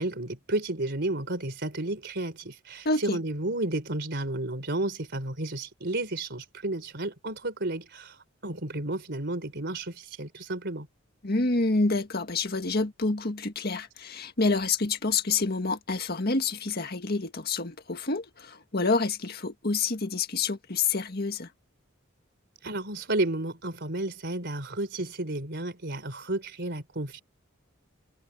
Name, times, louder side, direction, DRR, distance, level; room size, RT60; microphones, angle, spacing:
voice 1, 0.0-10.9 22.6-27.2, right 2 dB, 55° right, 3.9 m, -32 dB
voice 2, 2.9-3.2 11.2-21.5, left 3 dB, 50° left, 1.8 m, -28 dB
head